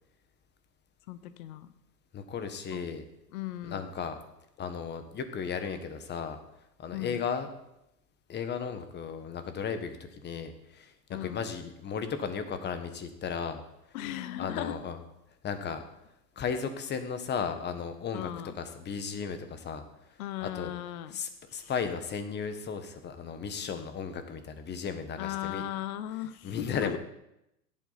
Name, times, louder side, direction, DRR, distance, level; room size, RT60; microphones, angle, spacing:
voice 1, 1.1-1.7 2.7-2.8 3.3-3.9 6.9-7.2 11.1-11.4 13.9-14.8 18.1-18.6 20.2-21.2 21.5-21.7 25.2-27.0, left 13 dB, 55° left, 13 dB, 1.0 m, -37 dB
voice 2, 2.1-3.0 3.6-4.2 4.6-6.4 6.8-7.5 8.3-13.6 14.4-15.0 15.4-15.8 16.3-19.8 20.4-20.7 21.1-25.6 26.4-27.0, left 6 dB, 20° left, 9 dB, 1.4 m, -35 dB
16.0 x 11.0 x 4.2 m, 0.83 s
hypercardioid pair, 120°, 50 cm